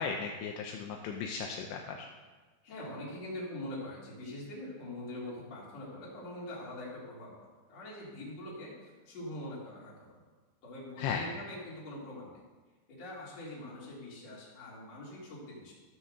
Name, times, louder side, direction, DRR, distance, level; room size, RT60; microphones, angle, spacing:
voice 1, 0.0-2.1 11.0-11.4, left 6 dB, 80° left, 2 dB, 2.7 m, -36 dB
voice 2, 2.6-10.1 10.6-12.4 12.9-15.7, left 1 dB, 35° left, -6 dB, 3.9 m, -43 dB
14.5 x 6.2 x 6.8 m, 1.3 s
omnidirectional pair, 5.8 m